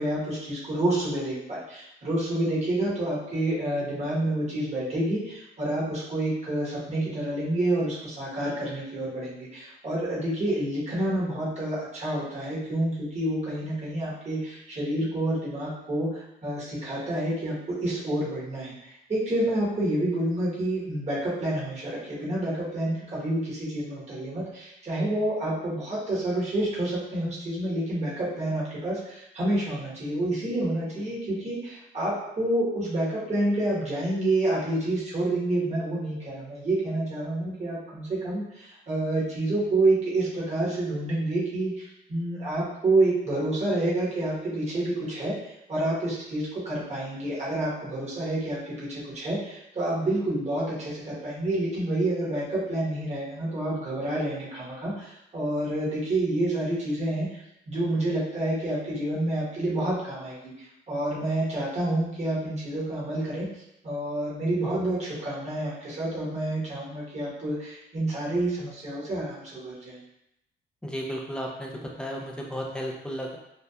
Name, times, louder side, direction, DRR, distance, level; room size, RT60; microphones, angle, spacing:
voice 1, 0.0-57.4 57.7-63.5 63.8-70.0, right 1 dB, 35° right, -7 dB, 1.1 m, -28 dB
voice 2, 70.8-73.4, equal, 5° left, -1 dB, 0.5 m, -34 dB
2.8 x 2.2 x 2.3 m, 0.83 s
cardioid pair, 90°, 20 cm